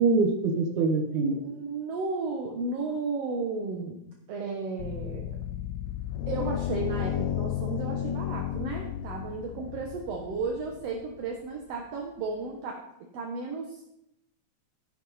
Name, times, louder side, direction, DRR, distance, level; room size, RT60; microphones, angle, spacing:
voice 1, 0.0-1.4, right 4 dB, 80° right, 3 dB, 2.7 m, -24 dB
voice 2, 1.3-4.0 4.3-5.4 6.3-12.8 13.1-13.9, right 4 dB, 65° right, 1 dB, 2.2 m, -34 dB
sound 1, 4.8-11.3, left 11 dB, 75° left, 1.9 m, -33 dB
13.0 x 11.0 x 4.2 m, 0.80 s
omnidirectional pair, 3.3 m